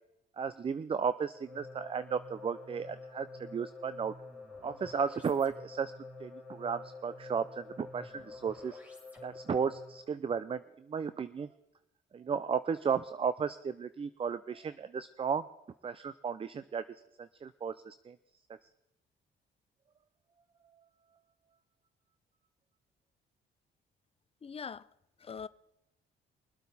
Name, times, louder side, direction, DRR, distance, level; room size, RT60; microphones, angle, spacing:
voice 1, 0.4-4.1 4.6-5.9 6.2-8.8 9.2-11.5 12.1-15.5 15.8-16.9 17.2-18.2 18.5-18.6, right 6 dB, 30° right, 0.4 m, -34 dB
sound 1, 1.3-10.1, left 3 dB, 5° right, 2.8 m, -48 dB
voice 2, 24.4-24.9 25.2-25.5, left 6 dB, 30° left, 0.5 m, -42 dB
23.5 x 8.2 x 4.1 m
cardioid pair, 90°, 20 cm